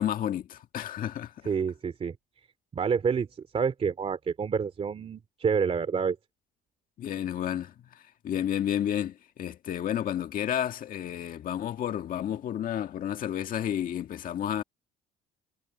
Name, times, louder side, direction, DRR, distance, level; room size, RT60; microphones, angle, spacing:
voice 1, 0.0-1.3 7.0-14.6, left 10 dB, 55° left, 1.7 m, -31 dB
voice 2, 1.5-2.1 2.7-3.3 3.5-6.2, right 6 dB, 35° right, 2.6 m, -28 dB
cardioid pair, 110°, 17 cm